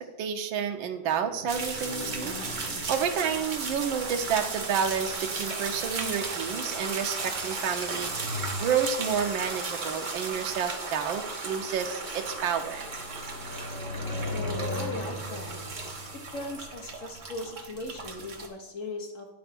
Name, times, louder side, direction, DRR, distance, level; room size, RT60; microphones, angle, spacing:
voice 1, 0.0-2.3 2.6-12.9, right 7 dB, 80° right, 5 dB, 1.5 m, -30 dB
sound 1, 1.1-4.2 7.6-9.3 11.6-17.7 18.0-18.1, left 2 dB, 85° left, 2.1 m, -39 dB
sound 2, 1.5-18.5, right 3 dB, 35° right, 0.8 m, -35 dB
voice 2, 14.3-15.6 16.3-19.3, left 2 dB, 45° left, 2 dB, 1.5 m, -38 dB
10.5 x 4.4 x 5.9 m, 1.0 s
omnidirectional pair, 2.1 m